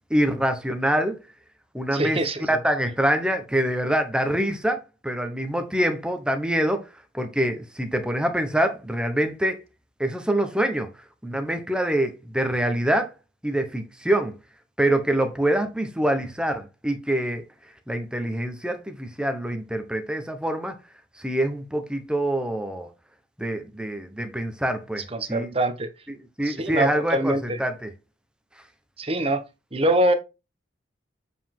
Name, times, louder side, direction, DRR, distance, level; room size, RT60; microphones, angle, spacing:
voice 1, 0.1-1.2 1.7-2.2 2.5-6.9 7.1-9.6 10.0-10.9 11.2-13.1 13.4-14.3 14.8-17.4 17.9-20.7 21.2-22.9 23.4-25.5 26.4-27.9, right 1 dB, 5° right, 1.1 m, -25 dB
voice 2, 1.9-2.5 25.1-25.9 26.4-27.6 29.0-29.4 29.7-30.1, right 1 dB, 30° right, 1.0 m, -24 dB
8.1 x 5.0 x 3.7 m
head